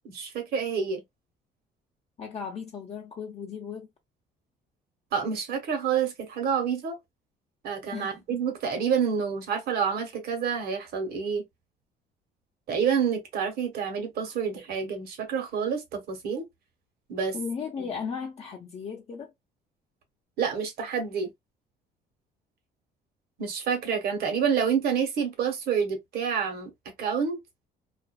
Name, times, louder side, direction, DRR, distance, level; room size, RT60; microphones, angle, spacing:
voice 1, 0.0-1.0 5.1-7.0 7.6-11.4 12.7-16.4 17.1-17.3 20.4-21.3 23.4-26.7 27.0-27.4, right 7 dB, 65° right, 1.1 m, -28 dB
voice 2, 2.2-3.9 7.9-8.4 17.3-19.3, left 6 dB, 40° left, 0.6 m, -36 dB
2.5 x 2.3 x 2.3 m
cardioid pair, 110°, 17 cm